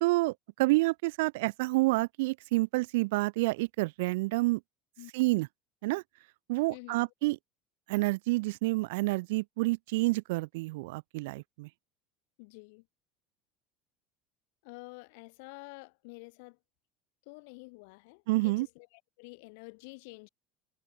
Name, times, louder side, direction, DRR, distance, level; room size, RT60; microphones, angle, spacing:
voice 1, 0.0-4.6 5.1-5.5 5.8-6.0 6.5-7.4 7.9-11.7 18.3-18.7, right 22 dB, 85° right, 1.5 m, -28 dB
voice 2, 6.7-7.1 12.4-12.9 14.6-16.6 17.3-20.3, left 30 dB, 70° left, 6.2 m, -49 dB
cardioid pair, 165°, 0 cm